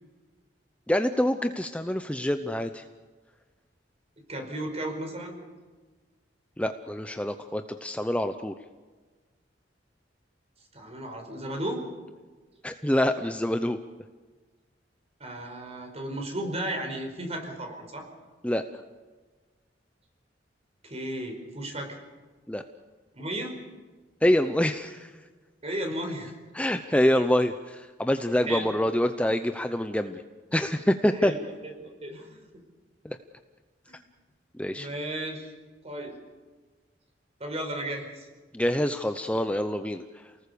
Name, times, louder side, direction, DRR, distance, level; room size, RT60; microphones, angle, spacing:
voice 1, 0.9-2.8 6.6-8.5 12.6-13.8 18.4-18.6 22.5-22.6 24.2-25.1 26.5-30.2 30.5-31.3 33.0-33.2 34.6-34.9 38.5-40.0, left 1 dB, 5° left, 8 dB, 0.7 m, -26 dB
voice 2, 4.3-5.4 10.7-11.8 15.2-18.1 20.8-22.0 23.1-23.6 25.6-26.3 28.4-28.7 31.1-31.4 31.6-32.4 34.7-35.5 35.8-36.1 37.4-38.3, right 1 dB, 35° right, 4 dB, 5.0 m, -34 dB
29.0 x 19.5 x 7.0 m, 1.4 s
head